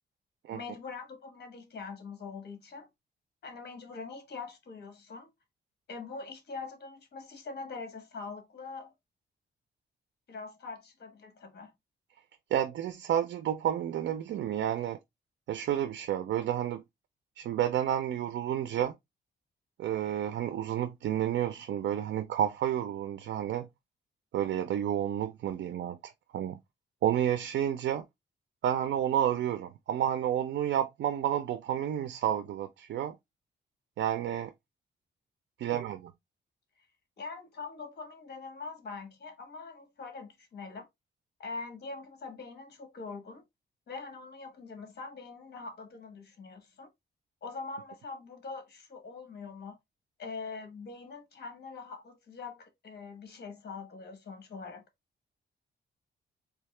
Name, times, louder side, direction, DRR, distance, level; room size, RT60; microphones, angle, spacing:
voice 1, 0.5-2.9 3.4-5.3 5.9-8.9 10.3-11.7 37.2-40.9 41.4-43.4 43.9-46.9 47.4-49.8 50.2-54.8, left 4 dB, 60° left, 1.3 m, -43 dB
voice 2, 12.5-15.0 15.5-16.8 17.4-18.9 19.8-23.7 24.3-26.6 27.0-28.0 28.6-33.1 34.0-34.5 35.6-36.1, right 10 dB, 70° right, 0.5 m, -30 dB
3.6 x 2.8 x 3.1 m
cardioid pair, 140°, 20 cm